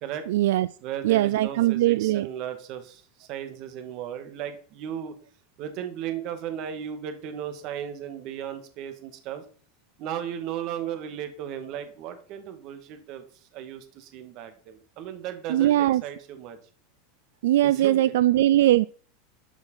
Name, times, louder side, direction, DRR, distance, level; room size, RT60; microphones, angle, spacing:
voice 1, 0.3-0.7 1.0-2.3 15.5-16.0 17.4-18.9, right 14 dB, 80° right, 0.4 m, -20 dB
voice 2, 0.8-5.1 5.6-9.4 10.0-13.2 13.5-16.6 17.6-18.1, right 9 dB, 40° right, 1.9 m, -35 dB
12.5 x 6.3 x 5.6 m
supercardioid pair, 165°, 0 cm